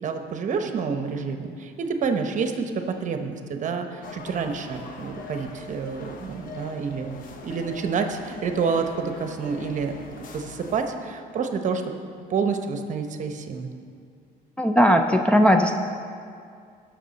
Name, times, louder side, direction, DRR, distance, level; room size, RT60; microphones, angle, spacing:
voice 1, 0.0-7.1 7.4-11.8 12.3-13.7, right 5 dB, 45° right, 6 dB, 0.9 m, -28 dB
sound 1, 4.0-10.8, left 3 dB, 55° left, 1.1 m, -42 dB
voice 2, 14.6-15.8, equal, 5° left, 2 dB, 0.5 m, -18 dB
17.5 x 6.4 x 4.1 m, 2.3 s
cardioid pair, 110°, 17 cm